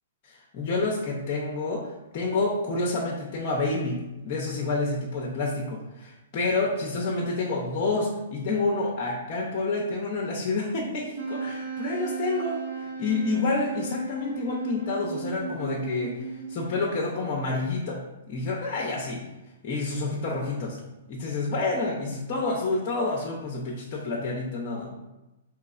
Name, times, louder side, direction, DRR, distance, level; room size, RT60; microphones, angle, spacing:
voice 1, 0.2-18.0 18.3-19.2 19.6-20.8 21.1-24.9, left 3 dB, 40° left, -2 dB, 0.6 m, -28 dB
Wind instrument woodwind instrument, 11.2-16.8, right 5 dB, 80° right, 1.2 m, -35 dB
3.8 x 3.0 x 2.4 m, 1.0 s
hypercardioid pair, 125°, 0 cm